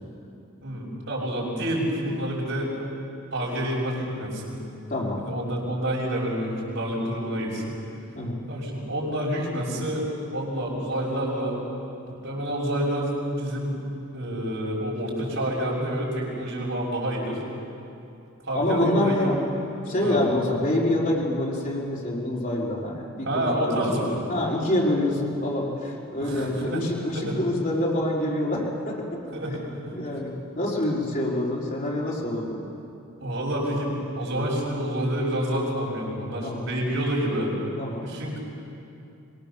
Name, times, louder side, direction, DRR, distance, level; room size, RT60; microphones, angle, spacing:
voice 1, 0.6-2.7 3.3-4.6 5.2-7.7 8.5-11.6 12.0-13.8 14.1-17.4 18.4-19.4 20.0-20.2 23.2-24.2 26.2-26.8 27.1-27.4 29.3-30.0 33.2-37.5 38.0-38.4, right 1 dB, 60° right, -3 dB, 6.5 m, -28 dB
voice 2, 4.9-5.2 8.1-8.4 18.5-19.4 19.9-29.0 29.9-32.6 36.4-36.7 37.8-38.1, left 1 dB, 40° left, -5 dB, 4.7 m, -26 dB
24.0 x 23.0 x 7.0 m, 2.7 s
head